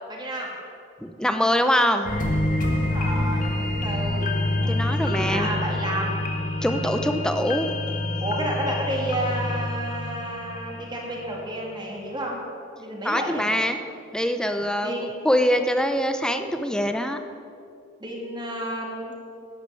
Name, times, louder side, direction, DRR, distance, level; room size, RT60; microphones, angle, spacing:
voice 1, 0.1-0.5 2.7-4.3 4.5-4.7 5.0-6.3 6.6-6.9 8.2-12.4 12.8-13.5 14.8-15.3 18.0-19.1, right 1 dB, 20° right, -2 dB, 2.8 m, -31 dB
voice 2, 1.0-2.1 4.7-5.5 6.6-7.7 13.0-13.8 14.1-17.2, equal, 5° left, 7 dB, 0.8 m, -24 dB
sound 1, 2.0-11.4 11.8-11.9, left 1 dB, 40° left, 1.6 m, -27 dB
11.5 x 9.7 x 9.1 m, 2.5 s
head